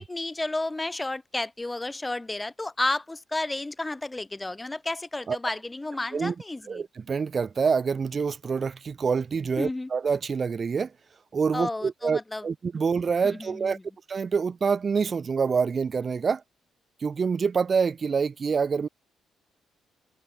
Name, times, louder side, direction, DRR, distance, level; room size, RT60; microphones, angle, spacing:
voice 1, 0.0-6.8 9.6-9.9 11.5-12.4 13.2-13.8, left 2 dB, 15° left, 0.7 m, -32 dB
voice 2, 6.7-10.9 11.3-13.8 14.1-16.4 17.0-18.9, right 5 dB, 40° right, 0.6 m, -26 dB
cardioid pair, 90°, 0 cm